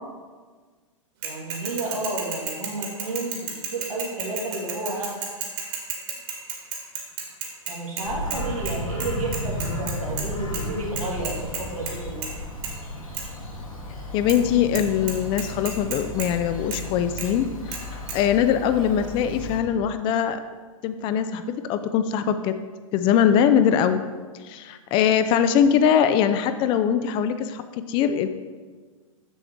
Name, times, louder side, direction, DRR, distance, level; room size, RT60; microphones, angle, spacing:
Bicycle / Mechanisms, 1.2-8.4 8.7-8.8 9.0-10.3 10.5-10.6 11.0-11.9 12.2-12.4 12.6-12.7 13.1-13.2 14.3-14.4 14.7-14.8 15.1-16.3 16.7-16.8 17.2-17.3 17.7-17.8 18.1-18.2, right 6 dB, 45° right, 1.7 m, -32 dB
voice 1, 1.2-3.4 3.7-5.1 7.7-11.3 11.6-12.2, right 2 dB, 80° right, -4 dB, 2.2 m, -31 dB
Bird vocalization bird call bird song, 8.0-19.6, left 1 dB, 80° left, 1.8 m, -34 dB
voice 2, 14.1-17.5 18.1-20.4 20.8-22.5 22.9-24.0 24.4-27.6 27.9-28.3, left 8 dB, 30° left, 10 dB, 0.4 m, -21 dB
7.0 x 6.8 x 3.6 m, 1.4 s
figure-of-eight pair, 105°, 18 cm